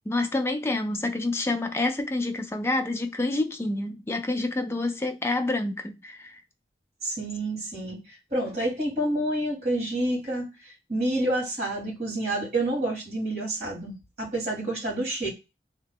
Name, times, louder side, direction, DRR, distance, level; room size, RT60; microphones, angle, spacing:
voice 1, 0.1-6.4, left 2 dB, 15° left, 0.3 m, -28 dB
voice 2, 7.0-8.0 8.3-15.3, right 1 dB, 40° right, 1.6 m, -28 dB
2.8 x 2.2 x 3.6 m
head